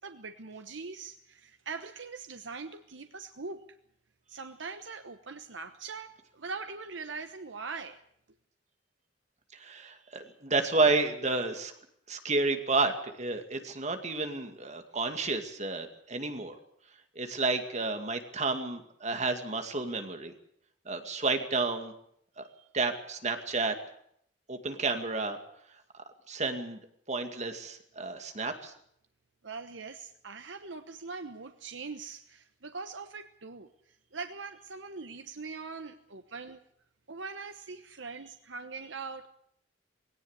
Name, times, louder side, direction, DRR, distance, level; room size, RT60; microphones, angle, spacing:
voice 1, 0.0-3.6 4.3-8.0 29.4-33.7 34.1-36.6 37.1-39.3, right 4 dB, 80° right, 7 dB, 1.1 m, -42 dB
voice 2, 9.6-11.7 12.1-16.5 17.2-20.3 20.9-21.9 22.4-22.5 22.7-23.7 24.5-25.4 26.3-26.8 27.1-28.7, right 3 dB, 40° right, 6 dB, 2.3 m, -31 dB
19.5 x 17.5 x 8.2 m, 0.69 s
head